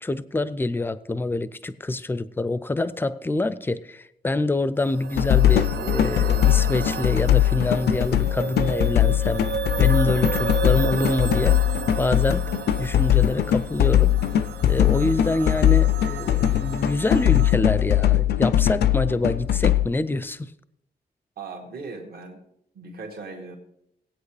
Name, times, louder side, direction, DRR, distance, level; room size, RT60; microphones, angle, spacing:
voice 1, 0.0-9.5 9.8-11.7 12.0-12.5 12.8-14.2 14.7-20.5, left 2 dB, 15° left, 0.4 m, -26 dB
sound 1, 4.8-17.5, right 7 dB, 85° right, 0.5 m, -33 dB
sound 2, 5.2-19.9, left 12 dB, 75° left, 0.4 m, -21 dB
voice 2, 21.4-22.4 22.7-23.6, right 4 dB, 65° right, 1.8 m, -38 dB
18.5 x 8.8 x 3.3 m
wide cardioid pair, 150°, 17 cm